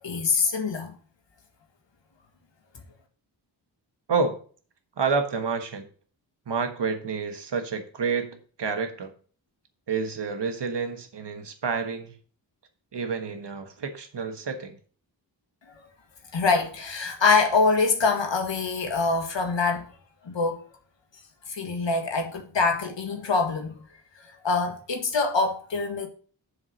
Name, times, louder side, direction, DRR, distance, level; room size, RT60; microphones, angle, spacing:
voice 1, 0.0-0.9 15.8-15.9 16.3-19.9 20.3-20.6 21.5-23.8 24.4-26.1, left 4 dB, 75° left, 1.8 m, -24 dB
voice 2, 5.0-5.9 6.5-9.1 9.9-12.2 12.9-14.8, right 5 dB, 65° right, 1.4 m, -29 dB
7.2 x 4.8 x 6.0 m
wide cardioid pair, 125°, 45 cm